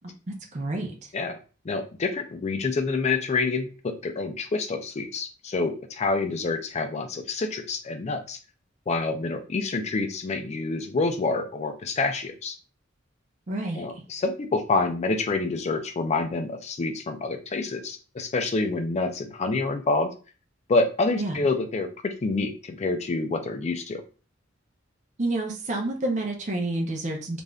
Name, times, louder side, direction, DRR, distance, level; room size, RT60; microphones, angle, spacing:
voice 1, 0.5-0.9 13.5-13.9 21.2-21.5 25.2-27.4, right 2 dB, 40° right, 2 dB, 0.6 m, -29 dB
voice 2, 1.6-8.4 8.9-12.5 13.7-20.1 20.7-24.0, left 3 dB, 35° left, 6 dB, 0.4 m, -27 dB
3.4 x 2.5 x 2.2 m, 0.36 s
head